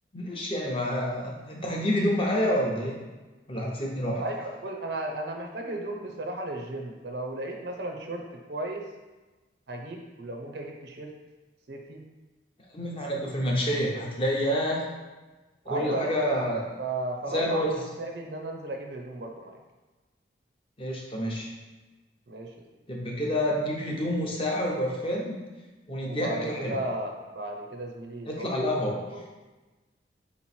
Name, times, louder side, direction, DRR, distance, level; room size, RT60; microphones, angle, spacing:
voice 1, 0.1-3.0 3.5-4.2 12.7-14.8 15.7-16.6 17.3-17.8 20.8-21.5 22.9-25.4 25.9-26.8 28.3-29.0, equal, 30° left, -2 dB, 0.7 m, -28 dB
voice 2, 4.2-8.8 9.7-11.1 11.7-12.0 15.7-16.1 16.8-17.7 18.0-19.6 22.3-22.5 26.0-28.8 29.1-29.2, right 1 dB, 65° right, 2 dB, 0.6 m, -35 dB
3.9 x 3.0 x 4.2 m, 1.2 s
head